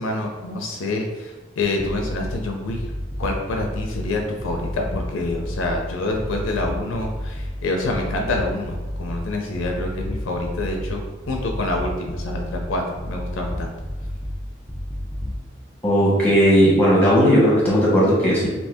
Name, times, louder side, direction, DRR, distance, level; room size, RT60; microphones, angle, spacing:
voice 1, 0.0-2.8 3.2-11.0 11.3-13.7, left 2 dB, 75° left, 2 dB, 0.4 m, -27 dB
sound 1, 1.8-2.3 2.7-4.1 4.4-5.8 6.1-7.5 7.8-9.2 9.5-10.9 11.2-12.6 13.0-14.3 14.7-15.3, equal, 10° right, 0.4 m, -31 dB
voice 2, 15.8-18.5, equal, 10° left, -7 dB, 1.1 m, -16 dB
2.7 x 2.7 x 3.4 m, 1.2 s
head